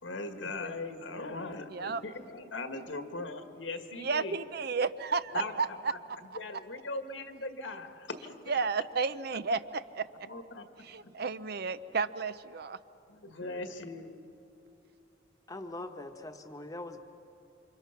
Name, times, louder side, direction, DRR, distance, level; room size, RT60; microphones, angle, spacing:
voice 1, 0.0-4.4 5.3-6.0 6.3-8.6 10.2-10.7 11.0-11.1 13.1-14.1, left 2 dB, 75° left, 7 dB, 1.7 m, -40 dB
voice 2, 1.7-2.0 3.9-5.9 8.5-10.3 10.8-12.8, right 4 dB, 55° right, 14 dB, 0.6 m, -32 dB
voice 3, 15.5-17.0, left 2 dB, 20° left, 6 dB, 1.1 m, -42 dB
28.5 x 25.5 x 5.9 m, 2.9 s
head